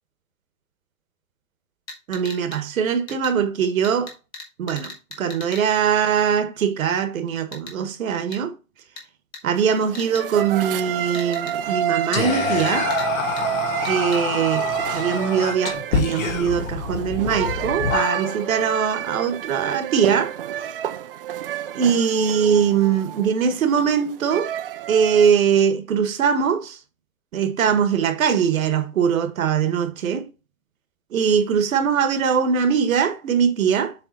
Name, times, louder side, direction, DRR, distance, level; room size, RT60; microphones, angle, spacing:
sound 1, 1.9-2.6 3.1-3.3 3.8-5.6 7.5-7.7 8.3-8.4 9.0-9.1 9.3-9.4 9.9-10.2 11.1-11.5 12.6-13.1 13.4-13.5 13.8-14.2, left 3 dB, 10° left, 0.7 m, -38 dB
voice 1, 2.1-4.1 4.6-8.5 9.4-12.9 13.9-20.3 21.7-24.5 24.9-26.8 27.3-30.3 31.1-33.9, right 7 dB, 80° right, 1.4 m, -21 dB
sound 2, 9.6-25.3, right 10 dB, 45° right, 0.4 m, -29 dB
Whispering, 12.1-18.6, left 6 dB, 70° left, 1.7 m, -27 dB
7.1 x 3.5 x 4.0 m
hypercardioid pair, 165°, 41 cm